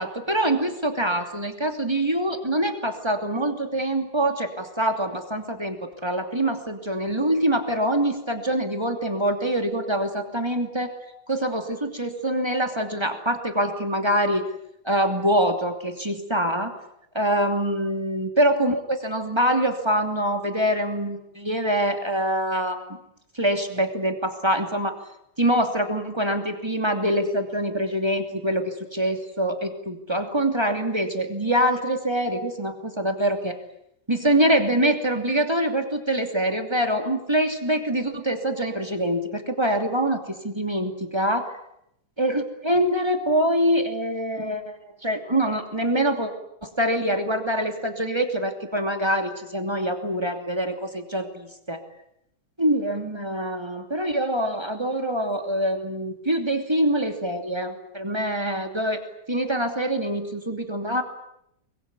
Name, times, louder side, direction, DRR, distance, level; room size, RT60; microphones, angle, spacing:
voice 1, 0.0-10.9 11.3-14.4 14.8-16.7 17.1-23.0 23.3-25.0 25.4-33.6 34.1-41.5 42.2-46.3 46.6-51.8 52.6-59.0 59.3-61.0, right 1 dB, 10° right, 5 dB, 2.3 m, -24 dB
24.0 x 21.5 x 9.6 m, 0.77 s
omnidirectional pair, 3.8 m